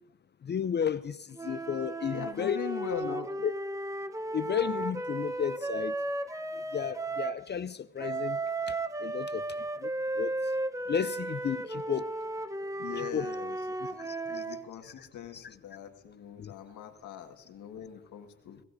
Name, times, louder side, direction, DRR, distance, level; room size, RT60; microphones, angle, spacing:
voice 1, 0.4-2.6 3.4-3.5 4.3-5.9 6.7-8.4 8.7-9.4 9.8-9.9 10.2-10.4 10.9-12.1 13.0-13.3 14.1-14.4 15.3-15.4 16.4-16.5, left 8 dB, 35° left, 0.5 m, -33 dB
sound 1, 1.3-7.4 8.0-14.6, right 2 dB, 10° right, 0.8 m, -34 dB
voice 2, 2.1-3.3 12.8-18.6, left 9 dB, 75° left, 1.8 m, -41 dB
21.0 x 18.0 x 2.7 m
cardioid pair, 90°, 30 cm